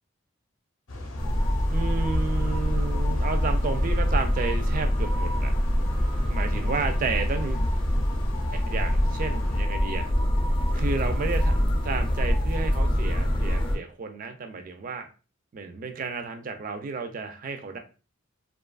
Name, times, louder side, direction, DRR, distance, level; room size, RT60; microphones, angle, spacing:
sound 1, 0.9-9.6, left 1 dB, 75° left, 0.6 m, -39 dB
sound 2, 1.2-13.8, equal, 25° left, 0.4 m, -25 dB
voice 1, 1.7-5.5 6.3-7.7 8.5-10.1 10.7-15.1 15.5-17.8, right 4 dB, 40° right, 6 dB, 0.4 m, -32 dB
2.6 x 2.4 x 2.3 m, 0.34 s
head